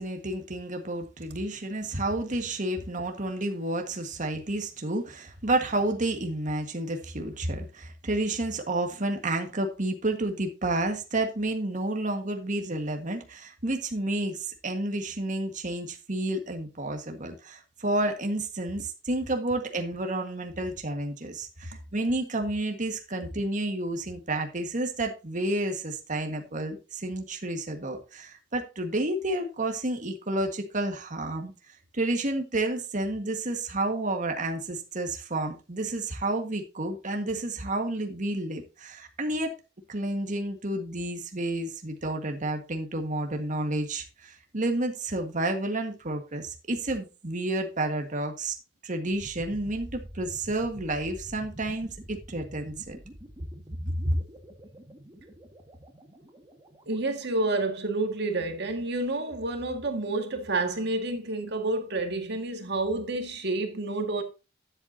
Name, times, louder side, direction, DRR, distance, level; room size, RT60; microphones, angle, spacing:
voice 1, 0.0-31.5 31.9-39.6 39.9-48.5 48.8-53.0 54.0-54.1, right 2 dB, 45° right, 1.6 m, -30 dB
sound 1, 49.1-58.0, equal, 20° right, 1.7 m, -47 dB
voice 2, 56.9-64.2, right 2 dB, 60° right, 2.0 m, -29 dB
12.0 x 7.8 x 2.8 m
head